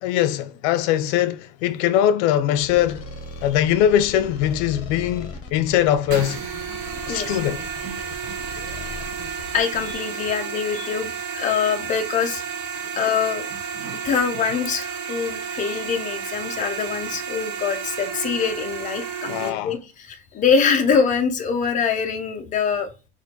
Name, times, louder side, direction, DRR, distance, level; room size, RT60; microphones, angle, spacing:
voice 1, 0.0-3.0 3.4-6.4 7.1-7.6 19.3-19.7, left 11 dB, 70° left, 0.6 m, -21 dB
sound 1, 2.6-9.9, left 3 dB, 40° left, 1.1 m, -38 dB
sound 2, 6.1-19.5, right 7 dB, 40° right, 0.8 m, -32 dB
voice 2, 7.1-7.4 9.5-12.4 13.0-13.5 13.9-22.9, left 6 dB, 20° left, 0.6 m, -24 dB
4.1 x 2.5 x 4.5 m
cardioid pair, 160°, 36 cm